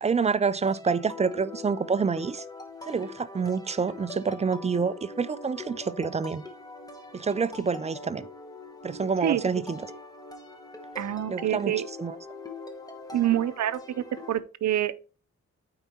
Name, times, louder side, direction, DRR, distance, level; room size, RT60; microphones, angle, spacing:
voice 1, 0.0-2.4 2.8-6.4 7.1-8.3 8.8-9.9 11.3-11.7 12.0-12.2, right 5 dB, 25° right, 0.3 m, -27 dB
sound 1, 0.7-14.4, left 3 dB, 10° left, 1.1 m, -43 dB
voice 2, 11.0-11.9 13.1-15.0, right 12 dB, 65° right, 0.6 m, -27 dB
8.9 x 4.7 x 4.3 m
wide cardioid pair, 160°, 30 cm